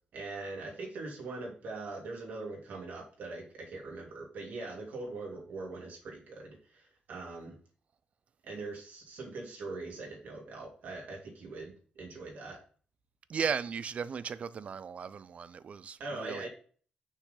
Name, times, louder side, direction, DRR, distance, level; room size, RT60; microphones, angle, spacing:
voice 1, 0.1-7.6 8.4-12.6 16.0-16.5, right 3 dB, 75° right, 3.2 m, -42 dB
voice 2, 13.3-16.5, right 6 dB, 50° right, 0.4 m, -36 dB
6.3 x 6.2 x 3.9 m
wide cardioid pair, 140°, 3 cm